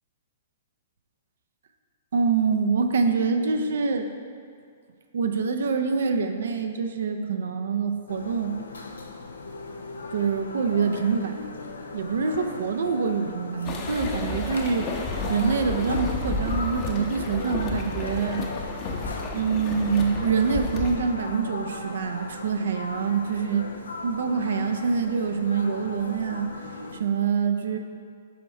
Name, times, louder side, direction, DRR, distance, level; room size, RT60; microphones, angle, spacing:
voice 1, 2.1-4.1 5.1-8.6 10.1-11.5 11.9-18.4 19.3-23.7 24.0-26.7 27.0-27.8, right 5 dB, 70° right, 6 dB, 0.5 m, -25 dB
sound 1, 8.1-27.0, left 3 dB, 85° left, 0.6 m, -38 dB
sound 2, 13.6-21.0, left 3 dB, 35° left, 0.8 m, -31 dB
5.6 x 5.5 x 4.3 m, 2.2 s
hypercardioid pair, 120°, 0 cm